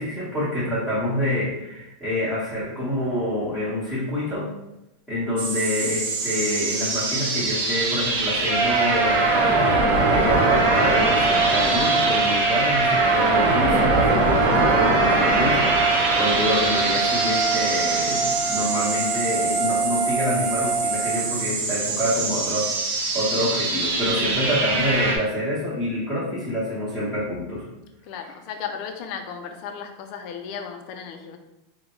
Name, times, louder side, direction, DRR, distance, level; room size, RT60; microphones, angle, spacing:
voice 1, 0.0-4.5 5.1-27.6, left 1 dB, ahead, -13 dB, 1.2 m, -27 dB
sound 1, 5.4-25.2, right 2 dB, 75° right, 0.7 m, -23 dB
sound 2, 8.5-21.3, right 4 dB, 15° left, 0.7 m, -25 dB
voice 2, 28.0-31.4, left 7 dB, 55° left, 6 dB, 0.4 m, -35 dB
3.4 x 2.1 x 3.0 m, 0.92 s
supercardioid pair, 130°, 0 cm